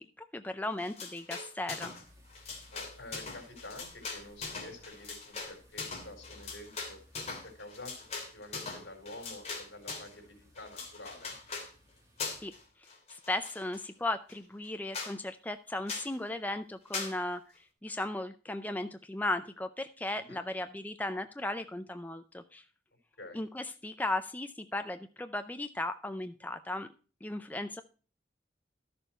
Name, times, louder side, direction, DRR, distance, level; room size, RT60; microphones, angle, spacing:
voice 1, 0.0-1.9 12.4-12.5 13.1-22.6 23.3-26.9 27.2-27.8, left 2 dB, 10° left, 8 dB, 0.5 m, -36 dB
sound 1, 0.8-2.0 2.3-10.1 10.6-11.7 12.2-12.6 12.9-13.8 14.3-14.4 14.6-14.7 14.9-15.1 15.9-16.1 16.9-17.1, left 4 dB, 35° left, 3.0 m, -41 dB
sound 2, 2.0-12.7, equal, 20° right, 2.7 m, -61 dB
voice 2, 2.7-7.0 7.4-8.1 8.3-11.4 20.2-20.4 23.2-23.4, left 2 dB, 75° left, 3 dB, 4.2 m, -48 dB
12.5 x 6.8 x 4.4 m, 0.37 s
head